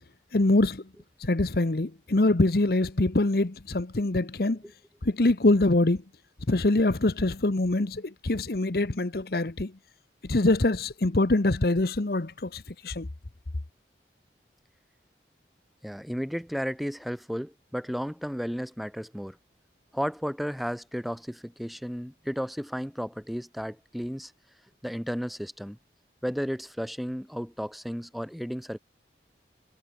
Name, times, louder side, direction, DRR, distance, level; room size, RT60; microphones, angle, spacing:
voice 1, 0.3-0.8 1.2-4.6 5.0-6.0 6.5-9.7 10.2-13.1, left 2 dB, 55° left, 1.0 m, -24 dB
voice 2, 15.8-19.4 19.9-24.3 24.8-25.8 26.2-28.8, equal, ahead, 3.6 m, -33 dB
head